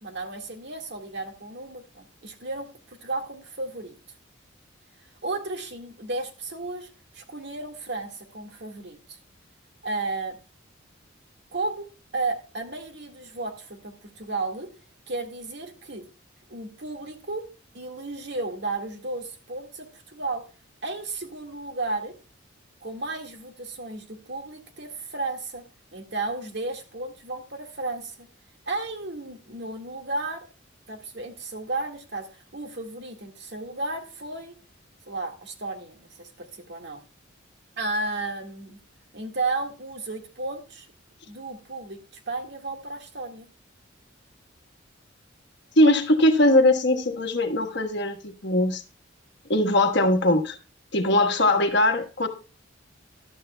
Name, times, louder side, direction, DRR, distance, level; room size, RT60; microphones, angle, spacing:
voice 1, 0.0-4.0 5.2-9.2 9.8-10.4 11.5-14.7 15.1-16.0 16.5-17.4 17.7-20.4 20.8-22.1 22.8-25.6 25.9-28.3 28.7-30.5 30.9-34.6 35.1-37.0 37.8-38.8 39.1-40.9 41.2-43.5, right 3 dB, 60° right, 4 dB, 1.8 m, -33 dB
voice 2, 45.8-48.8 49.5-50.6 50.9-52.3, left 1 dB, 60° left, 6 dB, 1.4 m, -20 dB
14.0 x 12.0 x 2.2 m, 0.32 s
head